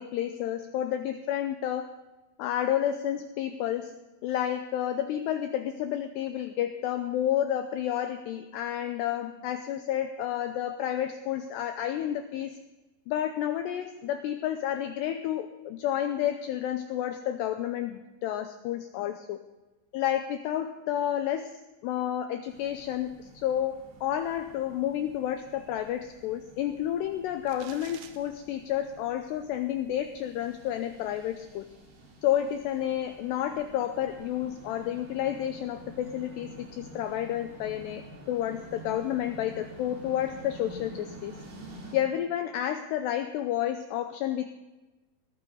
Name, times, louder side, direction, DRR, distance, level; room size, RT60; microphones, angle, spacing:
voice 1, 0.0-1.9 2.4-4.0 4.2-12.6 13.1-19.4 19.9-21.6 21.8-31.7 32.2-38.0 38.3-41.3 41.9-44.5, left 11 dB, 90° left, 8 dB, 2.4 m, -30 dB
sound 1, 22.5-42.0, right 2 dB, 60° right, 5.0 m, -49 dB
sound 2, 27.5-28.2, right 11 dB, 85° right, 2.4 m, -48 dB
20.0 x 13.5 x 3.9 m, 1.1 s
omnidirectional pair, 5.7 m